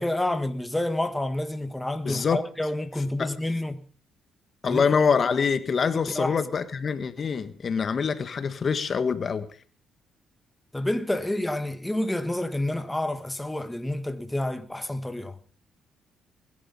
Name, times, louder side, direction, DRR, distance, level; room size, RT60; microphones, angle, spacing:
voice 1, 0.0-3.9 4.7-4.8 5.9-6.3 10.7-15.4, left 1 dB, 10° left, 1.6 m, -29 dB
voice 2, 2.0-2.4 3.2-3.3 4.6-9.5, left 5 dB, 45° left, 1.4 m, -25 dB
21.0 x 11.0 x 5.6 m
cardioid pair, 90°, 0 cm